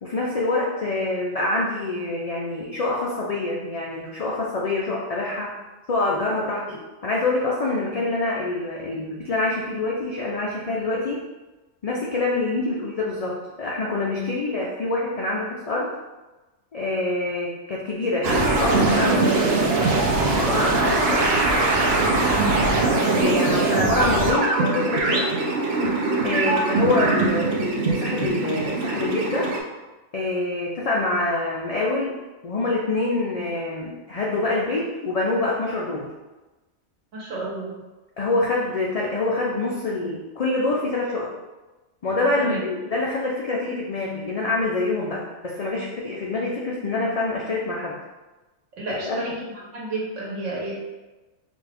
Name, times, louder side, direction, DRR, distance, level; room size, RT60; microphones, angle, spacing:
voice 1, 0.0-5.5 5.9-6.6 7.0-11.2 11.8-15.9 16.7-21.3 23.0-25.3 26.2-29.5 30.1-32.2 32.4-36.1 38.2-41.3 42.0-48.0 48.9-49.2, left 2 dB, 70° left, -4 dB, 0.3 m, -26 dB
sound 1, 18.2-29.6, right 3 dB, 65° right, 0.8 m, -22 dB
voice 2, 22.3-22.7 37.1-37.7 42.4-42.6 48.8-49.4 49.7-50.8, right 2 dB, 90° right, -4 dB, 1.3 m, -31 dB
3.9 x 2.4 x 3.4 m, 1.2 s
omnidirectional pair, 1.2 m